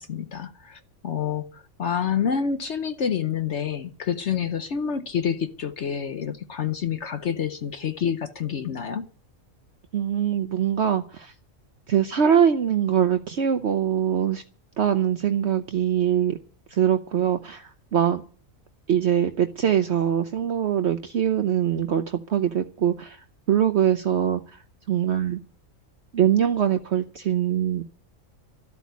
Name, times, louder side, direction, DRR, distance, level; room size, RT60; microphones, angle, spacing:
voice 1, 0.0-9.1, left 7 dB, 60° left, 1.1 m, -28 dB
voice 2, 9.9-11.3 11.9-14.4 14.8-16.4 16.7-18.2 18.9-25.4 26.1-27.8, right 9 dB, 60° right, 1.0 m, -23 dB
13.0 x 8.2 x 9.3 m
omnidirectional pair, 1.4 m